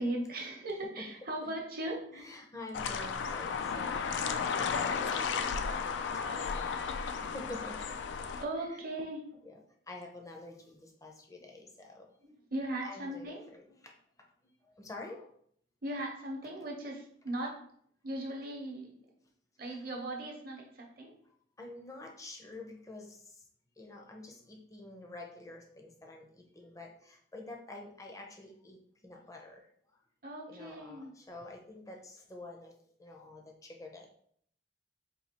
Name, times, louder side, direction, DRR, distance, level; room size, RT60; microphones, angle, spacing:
voice 1, 0.0-2.2 8.4-9.2 12.5-13.5 15.8-17.6 18.0-18.9 19.6-21.1 30.2-31.1, right 1 dB, 50° right, 0 dB, 0.9 m, -38 dB
voice 2, 2.1-6.8 7.2-8.1 8.6-8.8 9.4-12.4 12.8-13.9 14.6-15.3 21.6-23.4 23.8-29.7 30.5-34.2, left 2 dB, 20° left, 1 dB, 0.5 m, -48 dB
sound 1, 2.7-8.4, left 6 dB, 75° left, 0.3 m, -34 dB
4.1 x 2.7 x 2.8 m, 0.64 s
head